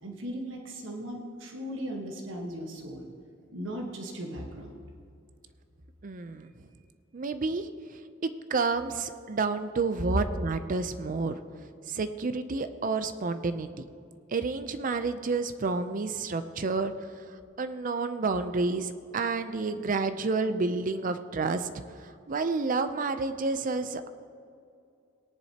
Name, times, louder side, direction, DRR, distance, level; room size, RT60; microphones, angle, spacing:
voice 1, 0.0-3.1 3.5-4.8 10.1-10.2, equal, 75° right, 1 dB, 1.3 m, -36 dB
voice 2, 6.0-6.5 7.1-7.7 8.2-11.4 11.9-13.9 14.3-16.9 17.6-21.7 22.0-24.1, right 4 dB, 45° right, 10 dB, 0.5 m, -30 dB
18.5 x 10.5 x 2.9 m, 2.5 s
head